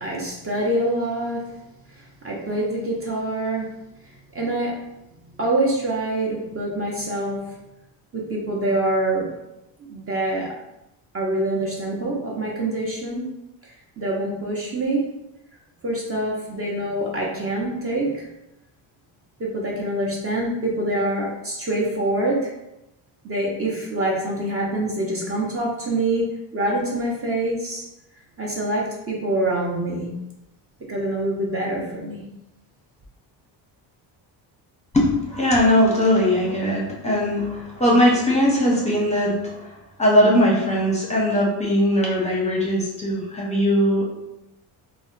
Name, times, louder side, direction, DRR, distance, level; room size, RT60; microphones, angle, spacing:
voice 1, 0.0-1.6 2.0-3.8 4.1-4.9 5.4-7.6 8.1-9.3 9.8-10.5 11.1-13.2 13.6-15.1 15.8-18.3 19.4-22.5 23.2-27.8 28.4-30.1 30.9-32.2, right 1 dB, 30° right, -3 dB, 0.6 m, -25 dB
voice 2, 34.9-44.0, equal, 15° left, -3 dB, 0.6 m, -20 dB
2.6 x 2.1 x 3.8 m, 0.91 s
cardioid pair, 120°, 45 cm